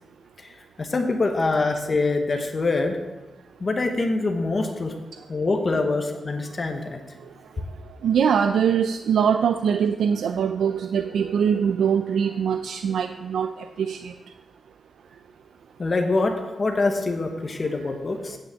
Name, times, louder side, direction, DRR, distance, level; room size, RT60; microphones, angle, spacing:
voice 1, 0.4-3.0 3.6-4.9 5.3-7.0 15.8-18.4, left 3 dB, 30° left, 4 dB, 1.0 m, -25 dB
voice 2, 8.0-13.5 13.8-14.1, right 7 dB, 90° right, 8 dB, 0.4 m, -22 dB
9.1 x 6.3 x 8.2 m, 1.1 s
wide cardioid pair, 140°, 0 cm